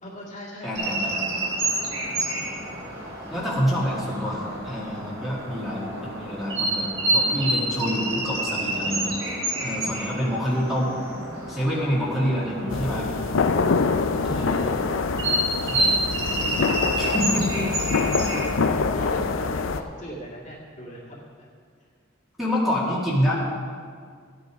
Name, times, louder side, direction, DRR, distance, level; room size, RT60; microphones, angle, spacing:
voice 1, 0.0-3.1 12.0-13.2 13.7-14.8 17.3-17.6 18.4-21.2, equal, 35° left, -4 dB, 2.2 m, -41 dB
voice 2, 0.6-1.2 3.3-9.3 9.6-10.9 11.5-13.1 14.2-14.8 15.6-17.6 18.2-18.4 22.4-23.3, equal, ahead, -7 dB, 2.1 m, -27 dB
sound 1, 0.7-19.2, right 1 dB, 65° right, 3.3 m, -29 dB
sound 2, 12.7-19.8, left 4 dB, 70° left, 0.5 m, -25 dB
14.0 x 9.4 x 4.7 m, 2.1 s
head